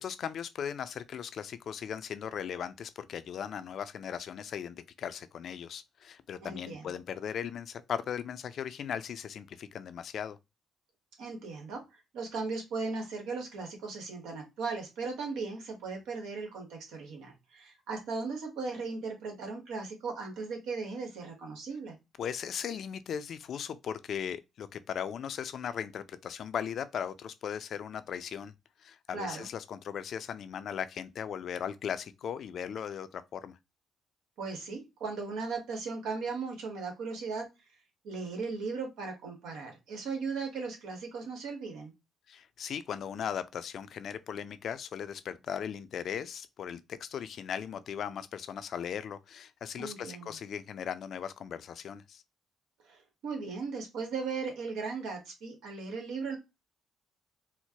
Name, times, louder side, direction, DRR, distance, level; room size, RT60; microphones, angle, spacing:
voice 1, 0.0-10.4 22.2-28.5 28.8-33.6 42.3-52.2, left 8 dB, 65° left, 0.3 m, -38 dB
voice 2, 6.4-6.9 11.2-21.9 29.1-29.5 34.4-37.5 38.0-41.9 49.8-50.3 52.8-56.4, right 4 dB, 90° right, 1.2 m, -37 dB
4.4 x 2.1 x 2.7 m
cardioid pair, 90°, 0 cm